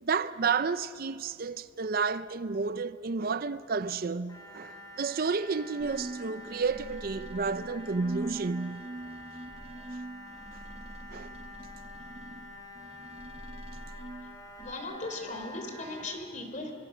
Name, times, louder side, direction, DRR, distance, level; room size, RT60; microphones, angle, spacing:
voice 1, 0.0-8.9 11.1-11.3, right 4 dB, 50° right, 0.5 m, -31 dB
sound 1, 4.3-16.2, left 1 dB, 20° left, 3.8 m, -48 dB
sound 2, 5.8-14.7, right 2 dB, 30° right, 0.9 m, -43 dB
voice 2, 14.6-16.7, left 2 dB, 40° left, 3.4 m, -38 dB
27.0 x 25.5 x 6.2 m
head